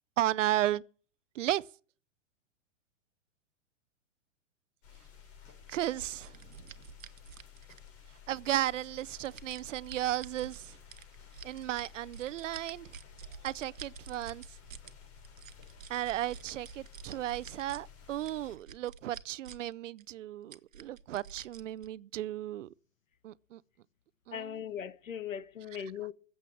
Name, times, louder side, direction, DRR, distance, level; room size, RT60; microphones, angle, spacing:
voice 1, 0.2-0.8 1.4-1.6 5.7-6.3 8.3-10.8 11.4-12.9 13.4-14.4 15.9-22.7 23.2-23.6 24.3-24.6 25.7-25.9, right 13 dB, 70° right, 0.6 m, -34 dB
sound 1, 4.8-18.6, left 7 dB, 55° left, 5.8 m, -54 dB
sound 2, 6.0-8.1 8.8-10.6 10.9-14.9 15.2-17.8 18.2-19.7 20.0-20.1 20.5-21.9, right 7 dB, 90° right, 1.0 m, -49 dB
voice 2, 24.3-26.1, left 9 dB, 90° left, 1.0 m, -39 dB
15.0 x 7.5 x 8.4 m
hypercardioid pair, 110°, 39 cm